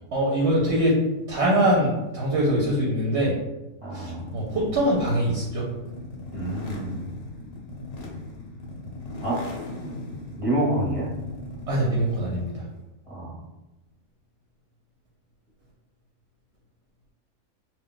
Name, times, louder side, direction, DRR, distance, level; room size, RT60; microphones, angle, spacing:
voice 1, 0.1-1.0 1.3-3.3 3.9-5.7 11.7-12.6, right 1 dB, 65° right, -4 dB, 0.8 m, -23 dB
voice 2, 3.8-4.4 6.3-7.0 9.2-9.4 10.4-11.1 13.1-13.4, right 1 dB, 35° right, -8 dB, 0.6 m, -27 dB
sound 1, 4.0-12.6, left 1 dB, 60° left, 0.6 m, -38 dB
2.2 x 2.1 x 3.8 m, 1.0 s
omnidirectional pair, 1.4 m